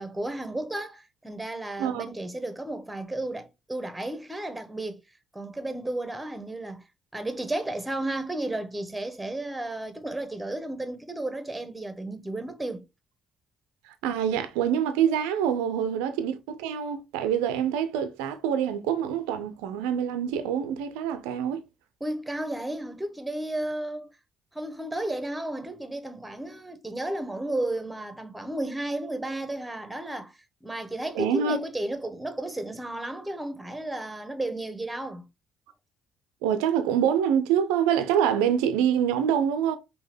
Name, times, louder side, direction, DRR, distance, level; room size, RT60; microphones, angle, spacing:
voice 1, 0.0-5.0 5.3-6.8 7.1-12.8 22.0-24.1 24.5-35.3, right 1 dB, 10° right, 1.1 m, -33 dB
voice 2, 14.0-21.6 31.2-31.6 36.4-39.8, right 8 dB, 70° right, 0.5 m, -25 dB
5.5 x 2.9 x 3.3 m
figure-of-eight pair, 45°, 0 cm